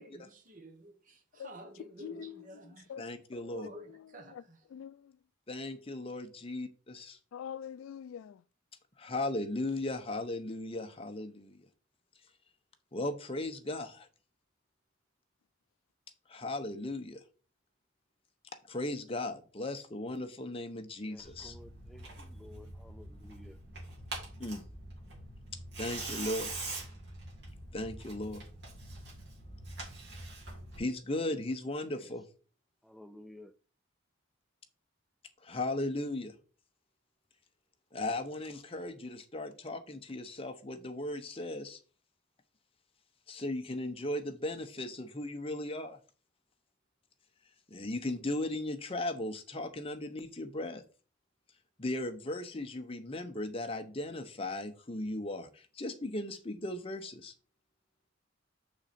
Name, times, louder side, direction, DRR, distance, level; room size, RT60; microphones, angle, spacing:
voice 1, 0.0-2.9 3.5-4.6, right 1 dB, 40° right, 1.1 m, -50 dB
voice 2, 2.0-2.5 2.9-3.0 3.3-3.6 4.3-4.4 4.7-5.1 7.3-8.4, left 8 dB, 90° left, 0.3 m, -44 dB
voice 3, 3.0-3.7 5.5-7.2 9.0-11.7 12.9-14.1 16.3-17.2 18.7-21.6 24.4-24.6 25.8-26.5 27.7-28.5 30.8-32.2 35.4-36.3 37.9-41.8 43.3-46.0 47.7-50.8 51.8-57.3, left 1 dB, 30° left, 0.8 m, -37 dB
voice 4, 21.0-23.6 31.9-32.1 32.8-33.5, left 1 dB, ahead, 0.4 m, -54 dB
Tearing, 21.2-30.8, right 2 dB, 60° right, 3.6 m, -44 dB
6.3 x 6.1 x 4.2 m
head